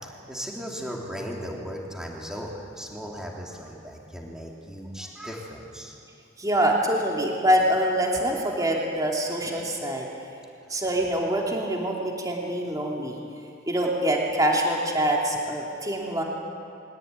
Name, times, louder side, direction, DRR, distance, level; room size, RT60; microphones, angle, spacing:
voice 1, 0.0-5.9, equal, 5° right, -2 dB, 3.2 m, -37 dB
voice 2, 6.4-10.1 10.7-13.2 13.7-16.2, right 1 dB, 20° right, -1 dB, 2.9 m, -25 dB
22.5 x 18.5 x 9.5 m, 2.6 s
head